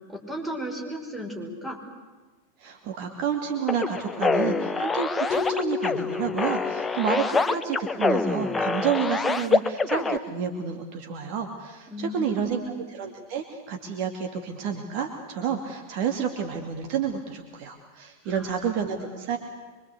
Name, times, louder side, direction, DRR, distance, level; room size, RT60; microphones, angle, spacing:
voice 1, 0.0-1.8 11.9-12.8 18.2-18.5 18.9-19.2, equal, 5° right, 2 dB, 5.5 m, -35 dB
voice 2, 2.6-12.6 12.9-19.4, right 7 dB, 45° right, 4 dB, 2.5 m, -30 dB
sound 1, 3.7-10.2, left 4 dB, 15° left, 0.9 m, -26 dB
Keyboard (musical), 5.3-8.1, left 8 dB, 40° left, 1.1 m, -34 dB
25.0 x 24.0 x 8.3 m, 1.3 s
figure-of-eight pair, 90°, 0 cm